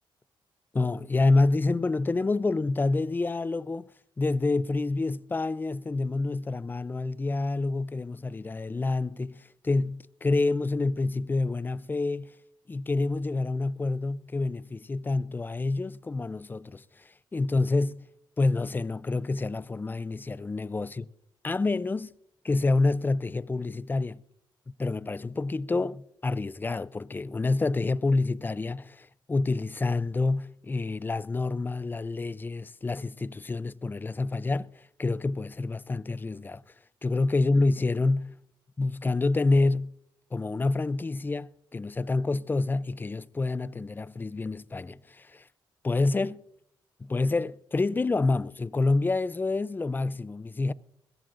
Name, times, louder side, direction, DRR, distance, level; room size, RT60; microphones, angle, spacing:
voice 1, 0.7-3.9 4.2-12.3 12.7-18.1 18.4-21.1 21.4-22.1 22.4-24.2 24.8-36.6 37.0-38.4 38.8-39.9 40.3-45.5 45.8-46.4 47.0-50.7, left 3 dB, 20° left, 0.4 m, -28 dB
21.5 x 17.0 x 2.5 m
cardioid pair, 95°, 9 cm